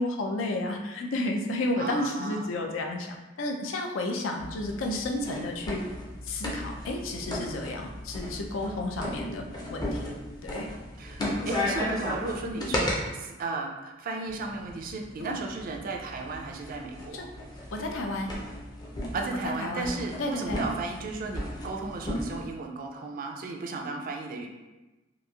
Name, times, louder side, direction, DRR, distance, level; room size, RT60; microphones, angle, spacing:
voice 1, 0.0-5.9 6.2-9.4 9.7-10.1 10.4-10.7 11.2-11.4 12.6-12.8 15.2-15.4 17.1-17.3 17.7-18.3 19.4-19.9 20.2-20.7, left 2 dB, 90° left, 2 dB, 0.4 m, -32 dB
voice 2, 1.8-2.5 11.0-17.3 19.1-24.5, right 3 dB, 45° right, 2 dB, 0.3 m, -35 dB
sound 1, 4.4-13.0 14.3-22.5, left 1 dB, 20° left, 0.4 m, -36 dB
2.9 x 2.4 x 2.3 m, 1.1 s
head